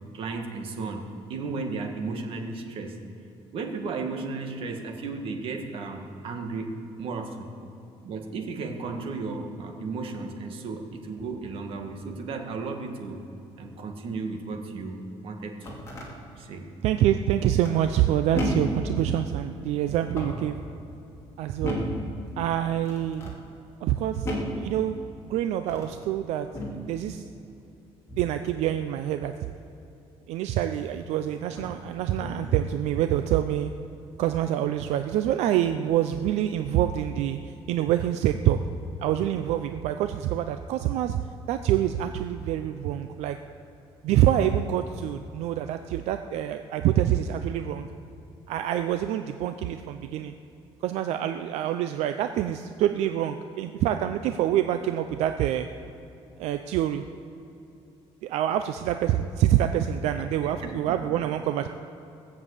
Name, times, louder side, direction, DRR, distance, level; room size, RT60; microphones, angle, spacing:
voice 1, 0.1-3.0 3.5-7.5 8.0-13.2 13.5-15.8 16.4-16.7 60.4-61.0, right 3 dB, 55° right, 3 dB, 1.7 m, -34 dB
sound 1, 15.5-16.1 17.6-18.0 18.3-18.8 20.0-20.5 21.6-22.1 22.8-23.4 24.2-24.6 25.6-26.0 26.5-26.8 28.1-28.4 30.5-30.6 31.5-31.8 32.2-32.6, equal, 25° left, 3.0 m, -33 dB
voice 2, 16.8-20.6 21.4-21.8 22.4-23.3 23.8-27.2 28.2-29.3 30.3-33.7 34.2-38.6 39.0-41.2 41.5-43.4 44.0-47.9 48.5-50.3 50.8-55.7 56.4-57.0 58.2-61.7, right 11 dB, 85° right, 8 dB, 0.5 m, -26 dB
19.0 x 7.4 x 8.2 m, 2.8 s
cardioid pair, 150°, 11 cm